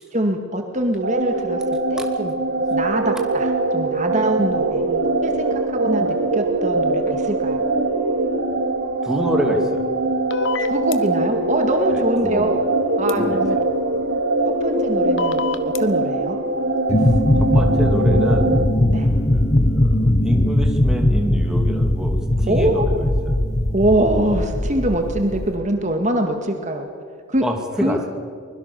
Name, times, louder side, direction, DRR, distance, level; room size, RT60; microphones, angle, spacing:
voice 1, 0.1-1.6 1.9-2.4 2.7-7.6 10.6-12.6 13.0-13.6 14.6-15.4 15.8-16.4 18.9-19.1 22.5-22.9 23.7-26.9 27.3-27.5 27.8-28.0, right 1 dB, 35° right, 4 dB, 2.0 m, -23 dB
sound 1, 1.0-18.7, right 2 dB, 80° right, 2.4 m, -22 dB
voice 2, 9.0-9.9 11.9-12.5 13.1-13.4 17.4-18.5 19.1-23.0 27.4-28.1, equal, 5° right, 2 dB, 2.6 m, -27 dB
sound 2, 10.3-11.0 13.1-13.2 15.2-15.8, left 6 dB, 65° left, 1.2 m, -26 dB
sound 3, 16.9-25.5, left 1 dB, 35° left, 1.0 m, -19 dB
24.0 x 22.0 x 7.0 m, 2.1 s
head